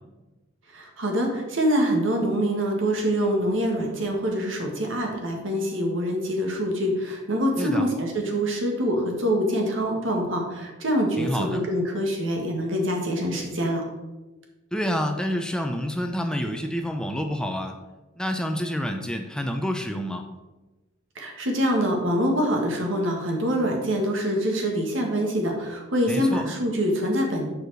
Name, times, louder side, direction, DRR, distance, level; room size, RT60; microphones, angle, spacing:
voice 1, 0.7-13.8 21.2-27.5, equal, 75° right, 1 dB, 1.8 m, -25 dB
voice 2, 11.2-11.6 14.7-17.7 18.2-20.2 26.1-26.4, equal, 5° left, 5 dB, 0.5 m, -28 dB
7.0 x 4.9 x 6.2 m, 1.1 s
head